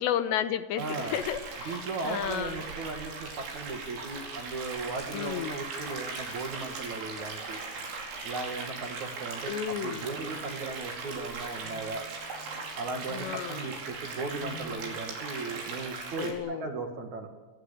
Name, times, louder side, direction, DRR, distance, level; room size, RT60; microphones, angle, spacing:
voice 1, 0.0-2.6 5.1-5.5 9.5-10.0 13.1-13.6 16.2-16.7, left 10 dB, 75° left, 11 dB, 3.0 m, -32 dB
voice 2, 0.8-1.2 1.7-7.6 8.2-12.0 12.7-17.3, right 3 dB, 50° right, 4 dB, 2.7 m, -37 dB
sound 1, 0.8-16.3, right 4 dB, 75° right, 7.0 m, -39 dB
28.5 x 19.0 x 8.5 m, 1.3 s
omnidirectional pair, 5.3 m